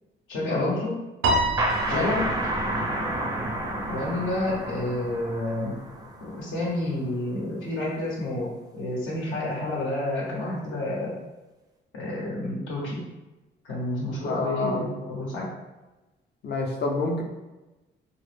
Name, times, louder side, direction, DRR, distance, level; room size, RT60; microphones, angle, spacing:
voice 1, 0.3-1.0 1.9-2.3 3.8-5.7 6.2-11.1 11.9-13.0 13.6-15.5, left 1 dB, 80° left, -4 dB, 0.8 m, -29 dB
Piano, 1.2-3.7, right 1 dB, 75° right, 0.5 m, -28 dB
sound 1, 1.6-7.0, right 1 dB, 20° right, 0.4 m, -30 dB
voice 2, 14.2-14.8 16.4-17.2, left 3 dB, 55° left, 0 dB, 0.6 m, -28 dB
2.2 x 2.0 x 3.1 m, 1.1 s
cardioid pair, 90°, 20 cm